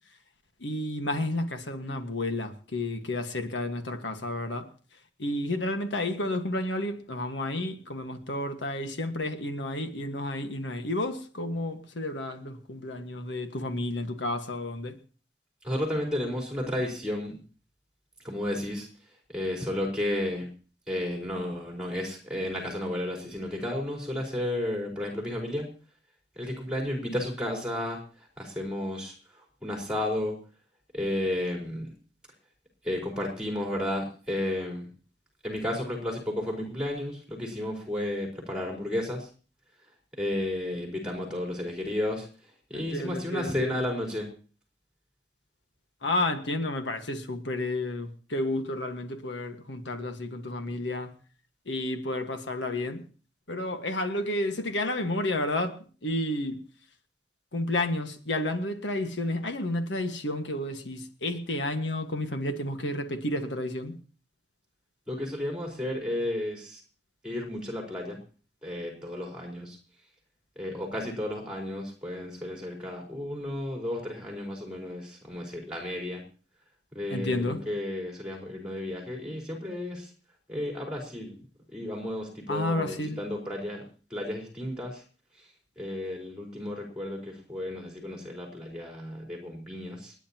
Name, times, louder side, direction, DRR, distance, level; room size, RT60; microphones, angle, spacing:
voice 1, 0.6-4.7 5.2-15.0 42.7-43.8 46.0-51.1 51.7-53.0 53.5-55.8 56.0-56.6 57.5-64.0 77.1-77.6 82.5-83.2, left 1 dB, 85° left, 6 dB, 1.6 m, -31 dB
voice 2, 15.6-17.4 18.2-18.9 19.3-20.5 20.9-25.7 26.3-28.0 28.4-30.3 30.9-31.9 32.8-34.9 35.4-39.3 40.2-42.3 42.7-44.3 65.1-66.8 67.2-68.2 68.6-69.8 70.6-76.2 76.9-80.1 80.5-81.4 81.7-83.8 84.1-85.0 85.4-85.5 85.8-90.1, left 1 dB, 5° right, -1 dB, 4.4 m, -32 dB
30.0 x 10.0 x 2.9 m, 0.38 s
head